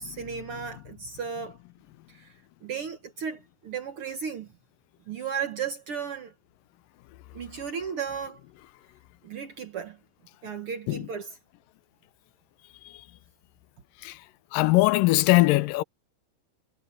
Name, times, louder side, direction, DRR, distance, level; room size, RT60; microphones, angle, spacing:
voice 1, 0.0-1.6 2.1-2.3 2.6-4.5 5.1-6.3 7.3-8.4 9.2-10.0 10.4-11.3, right 7 dB, 60° right, 1.6 m, -35 dB
voice 2, 14.5-15.8, left 20 dB, 85° left, 2.3 m, -22 dB
omnidirectional pair, 3.9 m